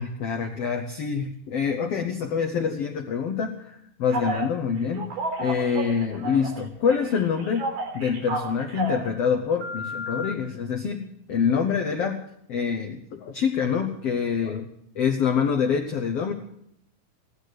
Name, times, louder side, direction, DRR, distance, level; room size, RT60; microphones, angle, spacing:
voice 1, 0.0-5.1 5.4-7.7 7.9-12.2 12.5-14.7 14.9-16.3, left 6 dB, 80° left, 5 dB, 1.4 m, -26 dB
Telephone, 4.1-4.5 5.0-6.6 6.9-9.1 9.6-10.3, right 2 dB, 80° right, 5.7 m, -31 dB
16.5 x 12.5 x 6.4 m, 0.74 s
omnidirectional pair, 4.3 m